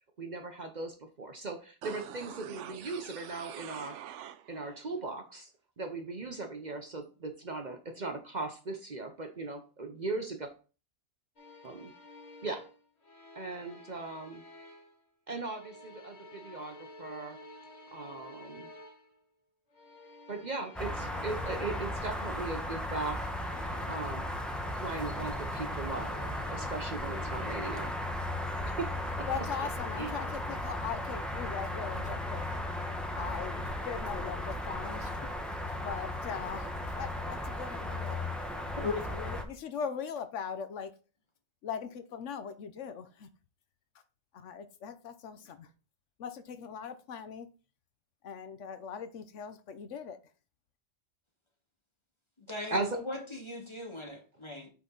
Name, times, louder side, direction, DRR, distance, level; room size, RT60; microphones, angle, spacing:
voice 1, 0.2-4.0 4.5-5.5 5.8-10.5 11.6-11.9 12.4-12.7 13.3-14.4 15.3-17.4 17.9-18.7 20.3-23.3 23.8-24.3 24.7-26.2 26.5-27.9 28.6-29.4 29.9-30.1 52.7-53.0, right 3 dB, 40° right, 0.9 m, -38 dB
sound 1, 1.8-4.8 5.1-5.2, right 10 dB, 85° right, 0.9 m, -45 dB
sound 2, 11.4-15.0 15.3-19.2 19.7-24.1 24.4-28.0 28.8-30.3, left 1 dB, 65° left, 1.8 m, -52 dB
sound 3, 20.7-39.4, left 1 dB, ahead, 0.8 m, -36 dB
voice 2, 29.3-32.5 33.1-38.2 39.1-40.9 41.6-43.3 44.3-45.7 46.2-47.5 48.2-50.2, left 7 dB, 85° left, 1.1 m, -40 dB
voice 3, 52.5-54.7, left 3 dB, 25° left, 2.0 m, -38 dB
8.5 x 4.1 x 3.9 m
omnidirectional pair, 1.2 m